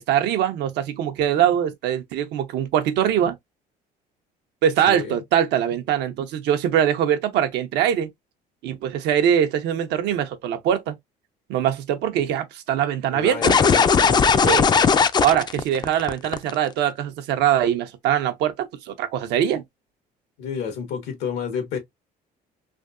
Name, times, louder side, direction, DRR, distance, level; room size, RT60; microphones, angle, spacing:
voice 1, 0.0-3.3 4.6-8.1 8.6-11.0 11.5-13.6 14.4-14.7 15.2-19.6, right 10 dB, 85° right, 0.7 m, -22 dB
voice 2, 4.8-5.2 13.1-14.2 20.4-21.8, left 6 dB, 90° left, 1.3 m, -30 dB
sound 1, 13.4-16.5, left 6 dB, 25° left, 0.3 m, -17 dB
3.4 x 2.7 x 2.5 m
cardioid pair, 110°, 17 cm